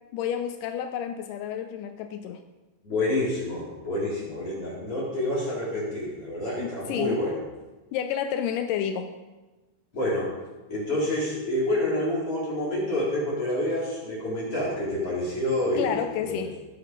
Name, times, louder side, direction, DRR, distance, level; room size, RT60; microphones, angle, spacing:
voice 1, 0.1-2.4 6.6-7.2 7.9-9.1 15.8-16.5, left 9 dB, 85° left, 7 dB, 2.3 m, -30 dB
voice 2, 2.8-7.4 9.9-10.3 10.7-16.6, left 1 dB, 45° left, -6 dB, 4.9 m, -28 dB
19.0 x 6.6 x 5.3 m, 1.2 s
omnidirectional pair, 3.7 m